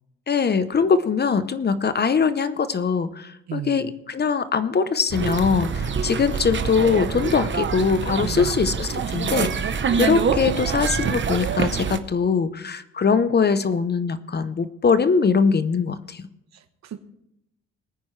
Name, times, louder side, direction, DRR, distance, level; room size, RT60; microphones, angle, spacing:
voice 1, 0.3-9.7 10.0-16.3, left 5 dB, 35° left, 13 dB, 0.8 m, -22 dB
voice 2, 3.5-3.9 8.2-8.6 16.5-17.0, right 10 dB, 60° right, 11 dB, 1.1 m, -34 dB
sound 1, 5.1-12.0, right 6 dB, 40° right, 0.9 m, -25 dB
20.5 x 9.3 x 3.2 m, 0.81 s
cardioid pair, 90°, 30 cm